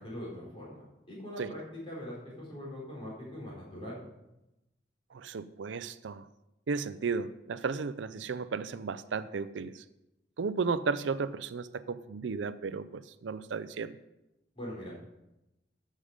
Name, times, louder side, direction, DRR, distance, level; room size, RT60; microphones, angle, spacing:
voice 1, 0.0-1.6 1.9-4.0 14.5-15.0, equal, 30° left, -5 dB, 4.5 m, -42 dB
voice 2, 5.1-6.3 6.7-9.8 10.4-14.0, right 5 dB, 80° right, 15 dB, 0.5 m, -34 dB
12.5 x 6.5 x 5.0 m, 0.94 s
head